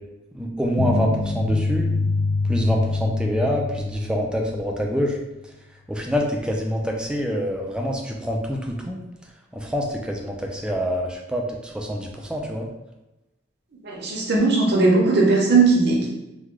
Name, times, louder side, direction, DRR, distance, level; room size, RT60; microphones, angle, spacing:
voice 1, 0.3-1.9 2.5-5.2 5.9-9.0 9.5-12.7, equal, 5° right, 0 dB, 0.4 m, -26 dB
sound 1, 0.8-5.0, left 3 dB, 85° left, 0.4 m, -25 dB
voice 2, 13.8-16.1, right 3 dB, 60° right, -2 dB, 0.8 m, -18 dB
3.1 x 2.2 x 3.6 m, 0.99 s
head